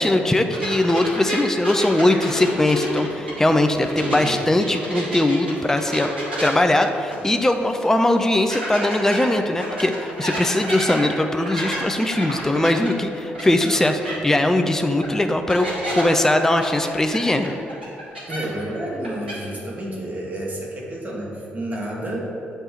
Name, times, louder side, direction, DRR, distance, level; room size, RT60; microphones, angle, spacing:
voice 1, 0.0-6.1 6.4-17.5, left 1 dB, 10° left, 6 dB, 0.4 m, -20 dB
sound 1, 0.5-4.3 4.6-7.5 7.8-7.9 8.5-13.8 14.0-14.1 15.0-15.1 15.5-16.0 16.6-18.7 18.9-19.3, right 1 dB, 85° right, 0.8 m, -30 dB
voice 2, 3.9-4.4 18.3-22.5, right 1 dB, 30° right, -2 dB, 1.4 m, -30 dB
7.6 x 3.3 x 4.4 m, 2.7 s
figure-of-eight pair, 40°, 5 cm